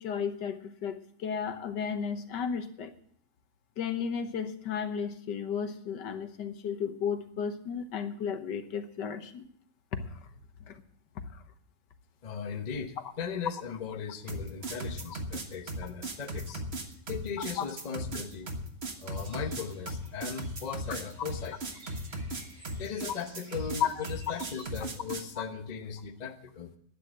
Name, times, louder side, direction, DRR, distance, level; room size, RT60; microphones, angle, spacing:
voice 1, 0.0-2.9 3.8-9.4 9.9-10.2 10.7-10.8 11.1-11.4 17.6-17.7 23.8-24.1 25.4-25.5, left 7 dB, 80° left, 9 dB, 1.7 m, -34 dB
voice 2, 12.2-16.6 17.1-18.5 19.0-21.6 22.8-26.7, left 6 dB, 30° left, 7 dB, 0.8 m, -38 dB
sound 1, 14.3-25.3, right 1 dB, 40° right, 1.6 m, -37 dB
sound 2, 19.1-24.6, right 1 dB, 80° right, 6.7 m, -54 dB
12.0 x 9.4 x 7.7 m, 0.67 s
omnidirectional pair, 1.9 m